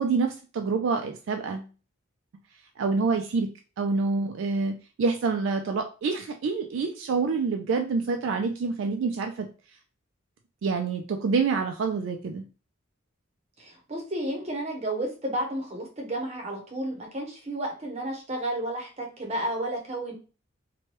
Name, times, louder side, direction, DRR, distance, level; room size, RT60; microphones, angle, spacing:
voice 1, 0.0-1.7 2.8-3.5 3.8-9.5 10.6-12.4, right 4 dB, 65° right, 4 dB, 0.3 m, -27 dB
voice 2, 13.6-20.1, right 1 dB, 30° right, 1 dB, 0.8 m, -32 dB
3.0 x 2.2 x 2.9 m, 0.35 s
head